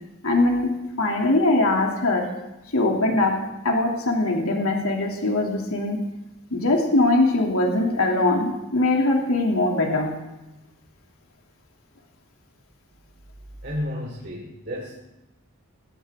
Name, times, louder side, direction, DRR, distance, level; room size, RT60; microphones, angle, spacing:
voice 1, 0.2-0.7 1.0-2.3 2.7-6.1 6.5-10.1, left 2 dB, 80° left, 0 dB, 2.9 m, -21 dB
voice 2, 13.6-15.0, equal, 50° right, -4 dB, 3.4 m, -32 dB
20.5 x 17.5 x 3.7 m, 0.98 s
head